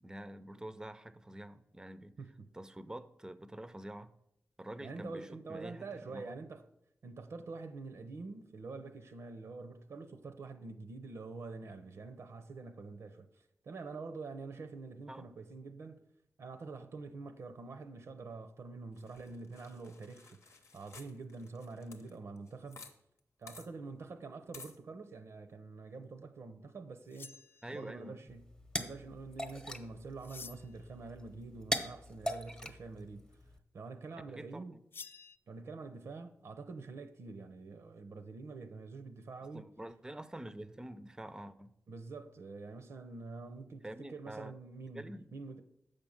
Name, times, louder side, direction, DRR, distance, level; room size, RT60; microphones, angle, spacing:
voice 1, 0.0-2.1 2.5-4.1 4.6-6.3 15.1-15.3 27.6-28.2 34.1-34.8 39.5-41.7 43.8-44.5 44.9-45.3, right 1 dB, 15° right, 0.5 m, -47 dB
voice 2, 4.8-6.6 7.0-13.3 13.6-16.0 16.4-20.4 20.7-22.8 23.4-27.4 27.7-28.5 28.8-33.2 33.7-34.8 35.5-39.6 41.9-45.6, right 3 dB, 75° right, 0.6 m, -46 dB
sound 1, 19.0-22.9 23.2-23.3 23.5-23.7 24.5-24.8, left 4 dB, 75° left, 0.9 m, -54 dB
sound 2, 27.1-28.0 30.2-30.9 34.9-35.4, left 5 dB, 50° left, 0.3 m, -50 dB
sound 3, 28.3-33.6, equal, 15° left, 0.8 m, -41 dB
6.6 x 5.2 x 7.1 m
wide cardioid pair, 90°, 5 cm